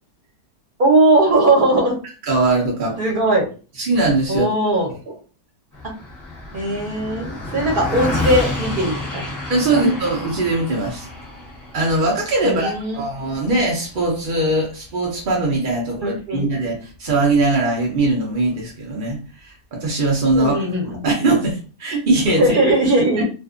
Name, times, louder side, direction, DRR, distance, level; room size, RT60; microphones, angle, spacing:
voice 1, 0.8-2.0 3.0-3.5 4.3-5.0 6.5-9.4 9.7-9.8 12.4-13.0 16.0-16.4 20.3-21.0 22.3-23.2, right 2 dB, 40° right, -1 dB, 0.8 m, -19 dB
voice 2, 2.2-3.0 3.8-4.5 9.5-11.1 11.7-20.6 21.0-22.6 23.2-23.3, right 2 dB, 60° right, -2 dB, 0.5 m, -20 dB
Car passing by, 5.7-15.3, left 2 dB, 15° left, 0.8 m, -30 dB
2.5 x 2.5 x 2.5 m, 0.34 s
omnidirectional pair, 1.8 m